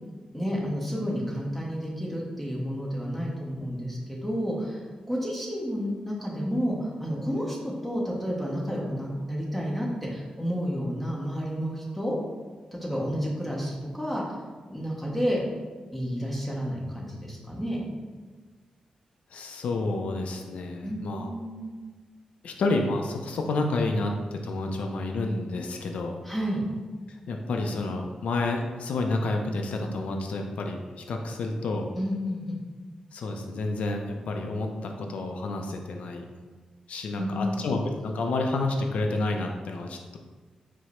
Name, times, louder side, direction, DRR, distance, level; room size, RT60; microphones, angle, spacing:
voice 1, 0.3-12.2 12.8-14.4 14.7-15.4 15.9-17.8 20.8-21.7 26.2-26.6 31.9-32.6 37.2-37.6, equal, ahead, -4 dB, 0.8 m, -30 dB
voice 2, 19.3-21.3 22.4-26.2 27.1-31.9 33.1-36.3 36.9-40.2, left 2 dB, 75° left, 3 dB, 0.4 m, -29 dB
4.7 x 2.0 x 4.2 m, 1.4 s
wide cardioid pair, 135°, 2 cm